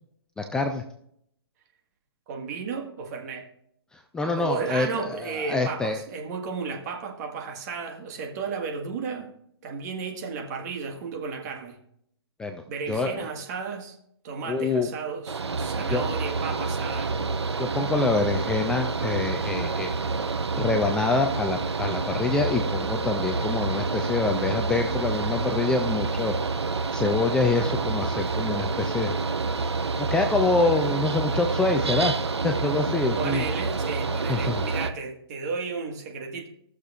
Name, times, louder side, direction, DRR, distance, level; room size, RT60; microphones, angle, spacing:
voice 1, 0.4-0.8 3.9-6.0 12.4-12.6 12.9-13.2 14.5-14.9 15.9-16.0 17.6-19.9 20.6-26.6 26.9-29.2 30.0-33.4 34.3-34.6, left 3 dB, 5° left, 4 dB, 0.4 m, -26 dB
voice 2, 2.3-3.5 4.4-9.3 9.6-11.8 12.7-14.0 14.2-17.2 33.2-36.5, right 5 dB, 40° right, 3 dB, 1.7 m, -33 dB
Mechanical fan, 15.3-34.9, right 4 dB, 85° right, 0.8 m, -28 dB
18.0 x 6.7 x 2.5 m, 0.70 s
hypercardioid pair, 140°, 14 cm